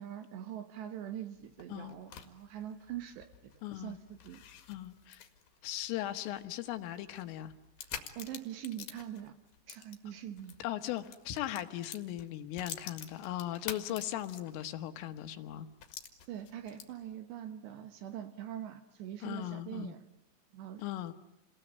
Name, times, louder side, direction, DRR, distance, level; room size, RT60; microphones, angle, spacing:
voice 1, 0.0-4.4 8.2-9.3 9.7-10.6 13.9-14.0 16.3-20.0 20.5-20.8, right 10 dB, 70° right, 9 dB, 3.0 m, -43 dB
sound 1, 1.4-10.6 10.9-14.8 15.2-15.3 15.8-17.1, left 9 dB, 60° left, 3.0 m, -48 dB
voice 2, 3.6-4.0 4.7-5.2 5.6-7.5 10.6-15.7 19.2-19.9 20.8-21.1, left 13 dB, 80° left, 9 dB, 3.7 m, -38 dB
29.0 x 20.0 x 9.2 m, 0.88 s
omnidirectional pair, 6.0 m